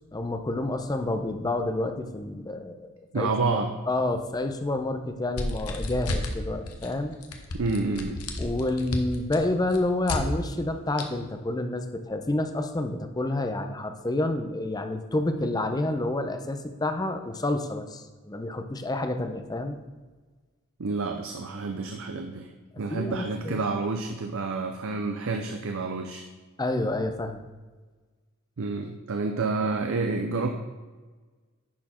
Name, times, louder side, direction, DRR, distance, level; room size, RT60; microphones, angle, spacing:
voice 1, 0.1-7.1 8.4-19.8 22.9-23.6 26.6-27.4, left 2 dB, 15° left, 7 dB, 0.5 m, -29 dB
voice 2, 3.1-3.7 7.5-8.3 20.8-26.2 28.6-30.5, right 3 dB, 60° right, 5 dB, 0.6 m, -29 dB
sound 1, 5.3-6.4 6.7-6.9 7.2-10.2 11.0-11.1, left 2 dB, 75° left, 1.0 m, -32 dB
10.5 x 4.4 x 4.3 m, 1.3 s
head